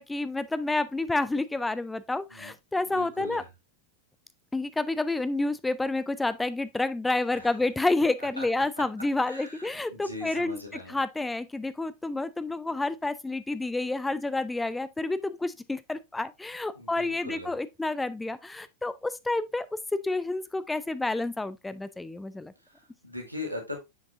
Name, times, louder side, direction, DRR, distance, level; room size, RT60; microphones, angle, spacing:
voice 1, 0.0-3.4 4.5-10.6 10.9-19.7 20.0-22.5, left 2 dB, 10° left, 0.4 m, -29 dB
voice 2, 2.9-3.5 7.3-7.5 8.2-8.5 9.2-11.0 16.7-17.6 22.6-23.9, left 2 dB, 90° right, 2.0 m, -40 dB
7.1 x 6.0 x 2.5 m
figure-of-eight pair, 90°, 0 cm